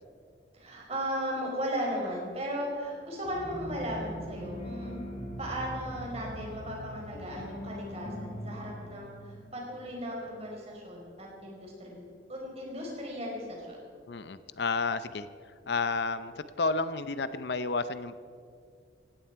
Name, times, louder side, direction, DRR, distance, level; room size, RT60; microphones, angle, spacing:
voice 1, 0.5-5.1 5.4-12.0 12.3-13.8, equal, 35° right, -1 dB, 4.5 m, -36 dB
sound 1, 3.2-10.1, equal, 35° left, 2.6 m, -41 dB
voice 2, 14.1-15.3 15.7-18.2, left 4 dB, 60° left, 13 dB, 0.6 m, -31 dB
18.5 x 16.5 x 4.6 m, 2.3 s
head